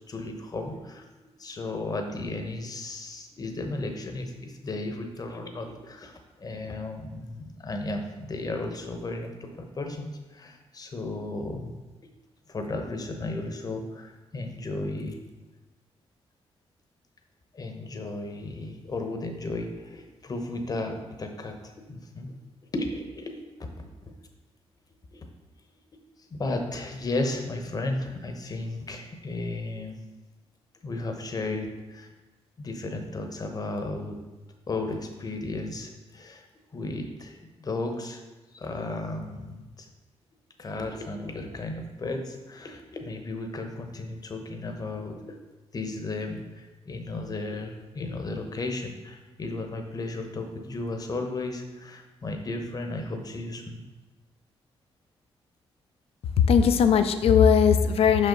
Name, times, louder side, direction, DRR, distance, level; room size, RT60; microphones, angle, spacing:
voice 1, 0.1-1.0 1.4-11.7 12.5-15.2 17.5-22.3 22.7-23.4 25.1-25.2 26.2-30.0 30.8-32.1 32.6-34.2 34.7-36.4 36.7-38.2 38.5-39.9 40.6-45.4 45.7-53.8, left 2 dB, 35° left, 5 dB, 0.9 m, -34 dB
voice 2, 56.4-58.3, left 7 dB, 70° left, 9 dB, 0.5 m, -19 dB
5.7 x 5.3 x 3.8 m, 1.2 s
cardioid pair, 95°, 10 cm